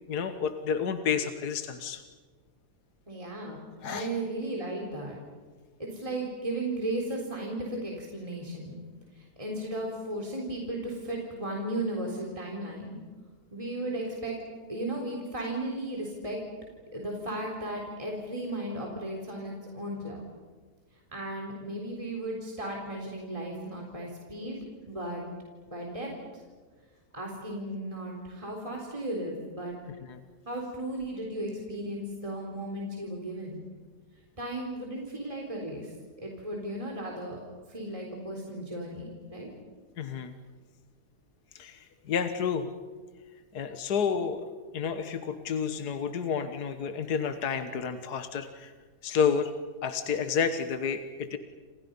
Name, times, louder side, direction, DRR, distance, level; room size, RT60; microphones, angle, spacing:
voice 1, 0.1-2.0 3.8-4.1 30.1-30.2 40.0-40.3 41.6-42.7 43.5-44.5 44.7-48.7 49.0-49.5 49.8-51.4, left 6 dB, 70° left, 8 dB, 1.8 m, -30 dB
voice 2, 3.1-5.2 5.8-8.8 9.1-13.0 13.5-14.4 14.7-16.4 16.9-20.2 21.1-24.6 24.9-25.2 25.6-26.1 27.1-29.7 30.5-33.6 34.4-37.4 37.7-39.5, right 1 dB, 20° right, -1 dB, 4.0 m, -35 dB
29.5 x 28.0 x 5.5 m, 1.4 s
omnidirectional pair, 1.8 m